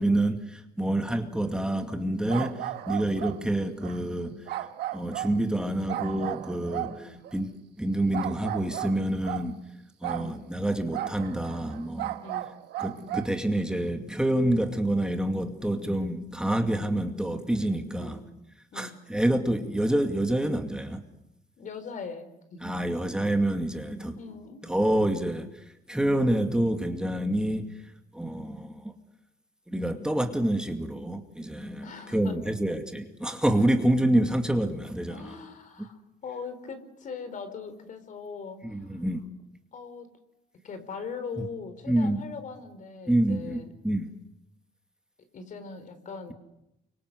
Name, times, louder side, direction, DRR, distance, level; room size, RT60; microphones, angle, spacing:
voice 1, 0.0-4.5 4.9-9.6 10.0-12.2 12.8-18.2 18.7-21.0 22.6-24.2 24.6-27.8 28.1-28.9 29.7-35.4 38.6-39.2 41.4-41.5 41.9-42.2 43.1-44.1, right 1 dB, 5° right, 4 dB, 2.4 m, -27 dB
sound 1, 2.3-3.4 3.8-4.0 4.5-5.4 5.9-7.4 8.1-9.5 10.0-10.3 10.9-13.4, right 14 dB, 75° right, 1.6 m, -35 dB
voice 2, 10.1-10.4 12.2-12.5 18.0-18.2 18.7-19.0 21.6-22.7 24.2-24.6 31.8-32.6 35.1-39.0 39.7-40.1 40.6-43.7 45.3-46.3, left 5 dB, 50° left, 10 dB, 4.6 m, -41 dB
29.5 x 25.5 x 8.0 m, 0.87 s
cardioid pair, 110°, 17 cm